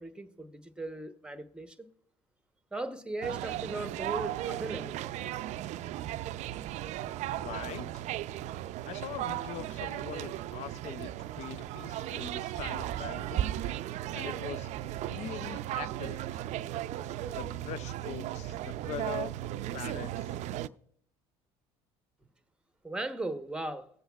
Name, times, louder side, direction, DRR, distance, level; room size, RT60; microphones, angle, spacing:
voice 1, 0.0-1.9 2.7-5.0 22.8-23.9, right 2 dB, 5° right, 0.9 m, -38 dB
sound 1, 3.2-20.7, right 13 dB, 60° right, 0.4 m, -36 dB
voice 2, 7.4-7.9 8.8-11.1 11.4-13.5 14.1-14.7 15.1-16.2 17.3-19.3 19.7-20.4, left 10 dB, 55° left, 0.5 m, -42 dB
19.0 x 7.8 x 2.3 m
supercardioid pair, 80°, 14 cm